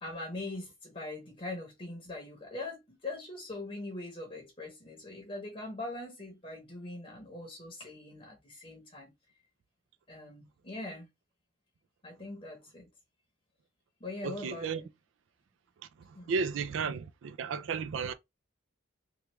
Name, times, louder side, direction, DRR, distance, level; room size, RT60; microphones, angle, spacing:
voice 1, 0.0-9.1 10.1-11.1 12.0-12.9 14.0-14.9 16.1-16.4, left 2 dB, 30° left, 0.8 m, -42 dB
voice 2, 14.2-14.8 16.0-18.1, right 5 dB, 75° right, 0.3 m, -34 dB
3.2 x 2.3 x 3.0 m
head